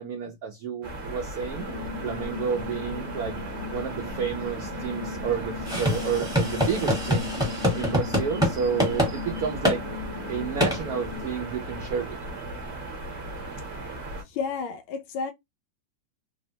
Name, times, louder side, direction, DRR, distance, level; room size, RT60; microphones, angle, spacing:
voice 1, 0.0-1.7 2.0-7.3 7.7-9.9 10.3-12.2, right 7 dB, 75° right, 0.8 m, -31 dB
sound 1, 0.8-14.2, right 2 dB, 45° right, 1.0 m, -36 dB
sound 2, 1.5-11.3, left 7 dB, 60° left, 0.6 m, -38 dB
sound 3, 5.7-8.5 8.8-9.1 9.6-9.8 10.6-10.8, equal, 5° right, 0.8 m, -24 dB
voice 2, 14.3-15.3, left 5 dB, 85° left, 1.3 m, -32 dB
3.4 x 2.1 x 2.6 m
omnidirectional pair, 2.1 m